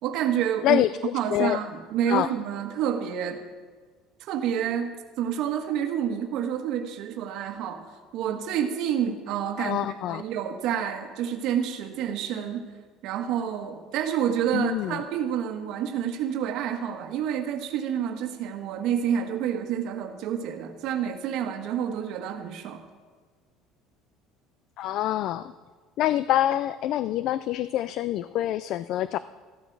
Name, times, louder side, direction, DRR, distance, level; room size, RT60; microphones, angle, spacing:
voice 1, 0.0-0.8 1.1-3.4 4.2-12.6 13.0-22.8, right 9 dB, 60° right, 5 dB, 1.4 m, -28 dB
voice 2, 0.6-1.6 2.1-2.3 9.6-10.2 14.5-15.0 24.8-25.5 26.0-29.2, left 13 dB, 50° left, 15 dB, 0.3 m, -26 dB
14.5 x 12.0 x 4.7 m, 1.5 s
cardioid pair, 155°, 0 cm